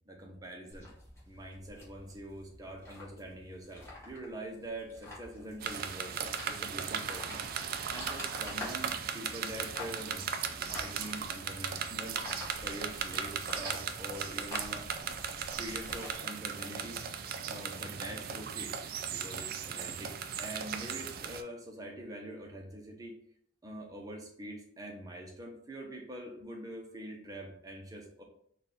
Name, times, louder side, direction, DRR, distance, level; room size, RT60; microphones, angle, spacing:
voice 1, 0.1-0.9 1.3-7.5 7.9-12.2 12.6-14.9 15.6-17.0 17.4-18.7 19.1-23.2 23.6-28.2, right 1 dB, 20° right, 0 dB, 0.7 m, -44 dB
sound 1, 0.7-16.2, left 2 dB, 15° left, 1.0 m, -48 dB
sound 2, 5.6-21.4, right 7 dB, 50° right, 0.3 m, -37 dB
4.2 x 2.4 x 3.4 m, 0.65 s
head